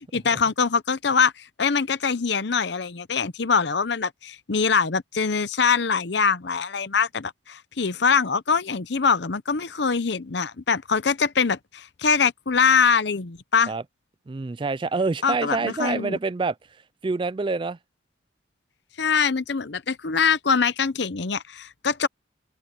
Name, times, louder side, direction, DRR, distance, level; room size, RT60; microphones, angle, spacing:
voice 1, 0.1-13.7 15.2-16.2 19.0-22.1, left 5 dB, 60° left, 0.7 m, -23 dB
voice 2, 14.3-16.6 17.0-17.8, right 3 dB, 25° right, 0.3 m, -26 dB
head